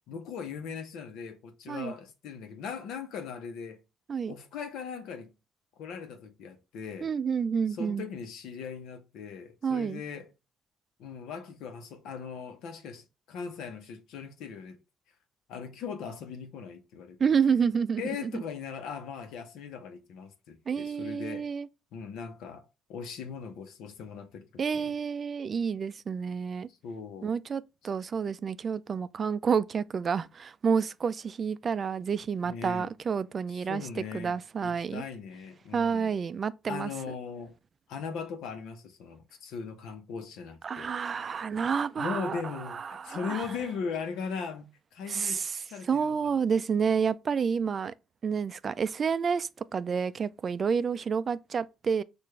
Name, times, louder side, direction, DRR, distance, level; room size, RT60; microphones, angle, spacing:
voice 1, 0.1-3.8 4.3-5.3 5.8-7.1 7.7-10.3 11.0-14.8 15.5-17.2 18.0-21.5 21.9-24.5 24.7-24.9 26.8-27.3 32.4-32.9 33.5-36.2 36.7-37.5 37.9-40.9 42.0-44.6 44.9-45.4 45.7-46.2, left 6 dB, 85° left, 0.9 m, -39 dB
voice 2, 7.0-8.0 9.6-10.0 17.2-18.4 20.7-21.7 24.6-26.7 27.2-35.0 35.7-36.9 40.6-42.4 42.7-43.5 45.1-45.6 45.9-47.9 48.2-52.0, right 6 dB, 40° right, 0.3 m, -29 dB
6.5 x 2.5 x 3.2 m
cardioid pair, 105°, 0 cm